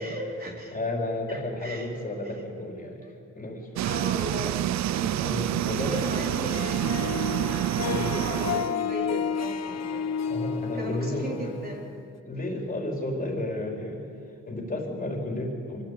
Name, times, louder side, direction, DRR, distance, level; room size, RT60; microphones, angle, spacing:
voice 1, 0.0-0.8 1.3-1.9 2.2-2.3 3.0-3.2 3.8-4.7 4.9-5.3 5.6-6.6 7.9-10.1 10.7-11.9, right 1 dB, 30° right, -1 dB, 4.3 m, -36 dB
voice 2, 0.7-3.0 3.3-3.9 5.2-6.7 7.8-8.1 9.7-9.9 10.2-11.4 12.2-14.1 14.4-15.8, left 1 dB, 30° left, -1 dB, 4.6 m, -32 dB
sound 1, 3.8-8.7, right 13 dB, 70° right, 0.4 m, -28 dB
Harp, 5.9-12.2, left 7 dB, 60° left, 1.1 m, -32 dB
24.5 x 14.5 x 8.5 m, 2.4 s
cardioid pair, 85°, 29 cm